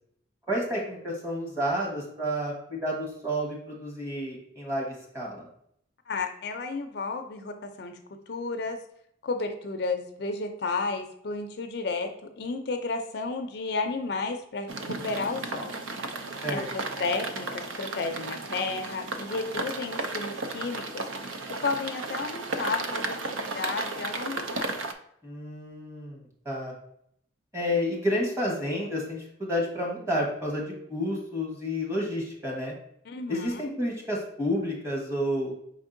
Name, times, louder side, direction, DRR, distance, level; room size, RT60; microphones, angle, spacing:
voice 1, 0.5-5.5 16.4-16.7 25.2-26.7 27.5-32.7 33.3-35.5, equal, 15° right, -2 dB, 1.1 m, -30 dB
voice 2, 6.1-8.0 8.3-8.8 9.2-15.7 16.5-24.7 33.1-33.6, left 3 dB, 55° left, 6 dB, 0.4 m, -32 dB
sound 1, 14.7-24.9, right 3 dB, 90° right, 0.5 m, -34 dB
5.3 x 3.5 x 2.5 m, 0.70 s
head